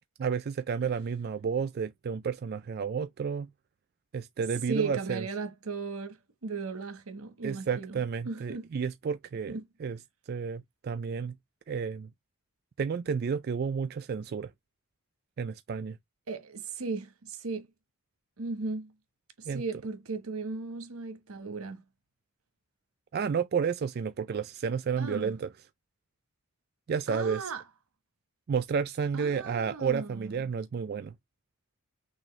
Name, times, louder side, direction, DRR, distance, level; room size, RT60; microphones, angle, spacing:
voice 1, 0.2-3.5 4.1-5.3 7.4-10.0 10.3-11.4 11.7-12.1 12.8-14.5 15.4-16.0 19.5-19.6 23.1-25.5 26.9-27.5 28.5-31.1, right 6 dB, 45° right, 0.3 m, -31 dB
voice 2, 4.7-8.0 8.2-8.7 9.5-9.6 16.3-17.7 18.4-18.9 19.4-21.8 25.0-25.3 27.1-27.6 29.1-30.3, right 4 dB, 85° right, 1.2 m, -36 dB
6.2 x 2.6 x 3.1 m
head